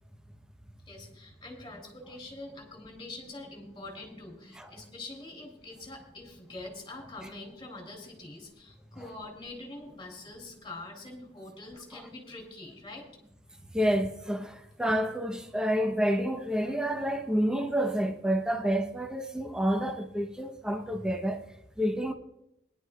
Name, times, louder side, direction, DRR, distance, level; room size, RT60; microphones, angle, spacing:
voice 1, 0.9-13.1, left 2 dB, 25° left, 3.2 m, -44 dB
voice 2, 13.7-21.4 21.8-22.1, equal, 5° right, 0.9 m, -29 dB
20.5 x 11.0 x 2.4 m
head